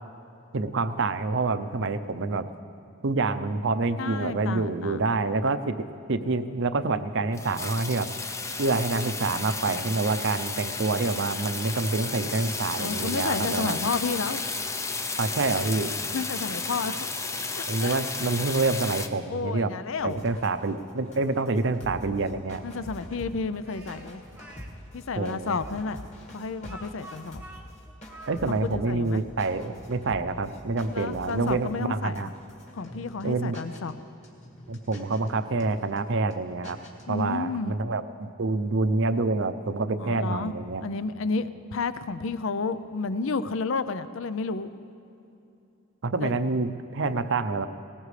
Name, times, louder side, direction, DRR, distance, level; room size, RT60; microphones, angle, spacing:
voice 1, 0.5-2.5 3.0-5.8 6.1-8.1 8.6-13.8 15.2-15.9 17.7-19.7 20.0-22.6 25.2-25.6 28.3-32.3 33.2-33.6 34.7-36.8 37.1-40.8 46.0-47.7, right 3 dB, 65° right, 11 dB, 0.6 m, -27 dB
voice 2, 4.0-5.0 12.8-14.4 16.1-16.9 17.6-18.0 19.3-20.2 22.6-24.2 24.9-26.0 26.3-27.4 28.6-29.2 30.9-32.3 32.7-34.0 37.1-37.7 40.0-40.5 40.8-44.7 46.2-46.3, left 4 dB, 70° left, 13 dB, 0.5 m, -31 dB
sound 1, 7.3-19.1, left 3 dB, 15° left, 0.5 m, -33 dB
sound 2, 20.0-33.2 33.5-33.9 34.2-35.3 35.6-36.0 36.3-36.4 36.6-37.3, equal, 35° left, 2.1 m, -45 dB
Speech, 23.6-24.7 25.6-28.6, right 1 dB, 10° right, 1.1 m, -48 dB
19.5 x 19.0 x 3.3 m, 2.8 s
head